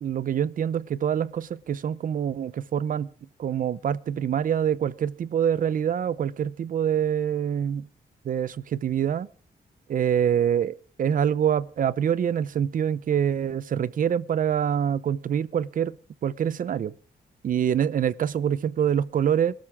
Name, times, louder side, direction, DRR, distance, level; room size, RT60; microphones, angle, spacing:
voice 1, 0.0-3.1 3.4-7.9 8.2-9.3 9.9-15.9 16.2-16.9 17.4-19.5, right 9 dB, 55° right, 0.8 m, -25 dB
24.0 x 13.0 x 3.6 m
wide cardioid pair, 170°, 17 cm